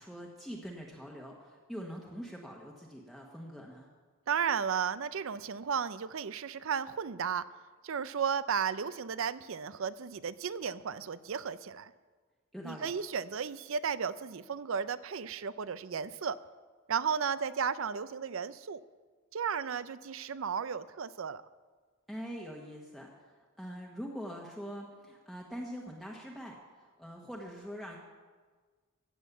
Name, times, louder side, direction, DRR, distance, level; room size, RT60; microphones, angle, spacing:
voice 1, 0.0-3.9 12.5-12.9 22.1-23.1 23.6-26.6 27.0-28.0, equal, ahead, -2 dB, 1.2 m, -43 dB
voice 2, 4.3-7.4 7.8-11.9 12.6-16.4 16.9-18.8 19.3-21.4, right 6 dB, 65° right, 16 dB, 0.5 m, -34 dB
15.0 x 8.5 x 7.2 m, 1.5 s
head